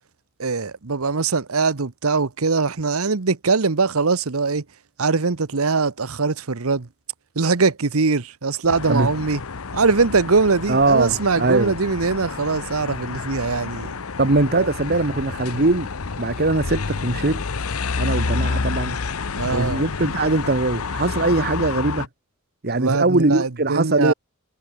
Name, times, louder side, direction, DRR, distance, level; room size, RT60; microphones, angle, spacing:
voice 1, 0.4-4.6 5.0-6.9 7.4-9.4 9.7-13.9 14.6-14.7 19.4-19.8 22.7-24.1, right 4 dB, 75° right, 1.0 m, -21 dB
sound 1, 8.7-22.1, left 4 dB, 75° left, 0.9 m, -29 dB
voice 2, 10.7-11.7 14.2-15.9 16.2-17.4 18.0-19.0 19.5-22.1 22.6-24.1, right 2 dB, 45° right, 1.3 m, -21 dB
head